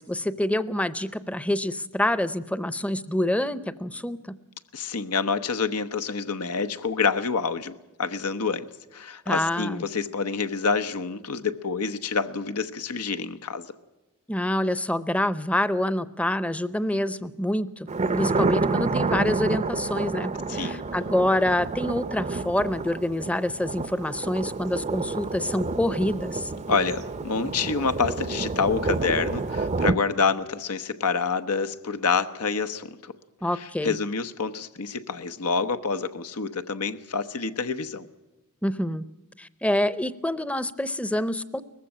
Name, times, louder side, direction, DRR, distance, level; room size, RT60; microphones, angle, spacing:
voice 1, 0.0-4.4 9.3-9.8 14.3-17.9 18.1-26.5 33.4-34.0 38.6-39.0 39.4-41.6, left 1 dB, 5° left, 16 dB, 0.7 m, -26 dB
voice 2, 4.7-7.7 8.0-13.7 20.5-20.8 26.7-33.1 33.5-38.1, left 5 dB, 90° left, 9 dB, 1.0 m, -27 dB
Thunder, 17.9-29.9, right 3 dB, 30° right, 0.6 m, -29 dB
19.5 x 15.5 x 8.7 m, 1.1 s
head